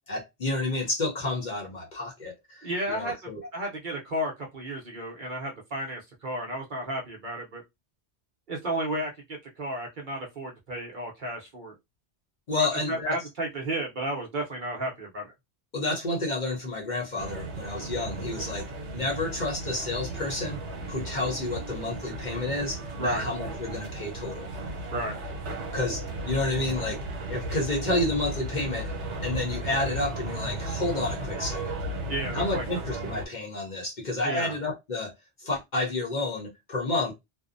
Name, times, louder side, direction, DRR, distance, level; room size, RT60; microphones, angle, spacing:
voice 1, 0.1-3.5 12.5-13.2 15.7-20.6 20.9-24.5 25.7-27.0 27.3-28.9 29.2-31.8 32.3-35.1 35.4-37.1, left 2 dB, 45° left, 0.8 m, -30 dB
voice 2, 2.6-3.2 3.5-7.6 8.5-9.1 9.6-11.7 12.5-15.3 23.0-23.3 24.9-25.2 32.1-32.6 34.2-34.6, right 1 dB, 50° right, 0.8 m, -32 dB
sound 1, 17.2-33.3, right 2 dB, 85° right, 1.1 m, -35 dB
2.6 x 2.0 x 2.5 m
omnidirectional pair, 1.2 m